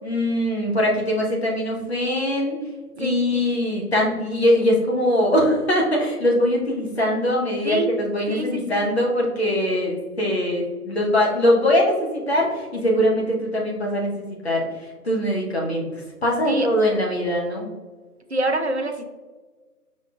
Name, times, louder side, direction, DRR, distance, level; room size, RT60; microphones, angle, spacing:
voice 1, 0.0-2.6 2.9-14.7 15.0-17.7, left 1 dB, 40° left, -2 dB, 1.1 m, -22 dB
voice 2, 8.3-8.8 16.4-16.7 18.3-19.0, right 2 dB, 50° right, 6 dB, 0.4 m, -26 dB
5.5 x 3.7 x 2.4 m, 1.3 s
figure-of-eight pair, 150°, 46 cm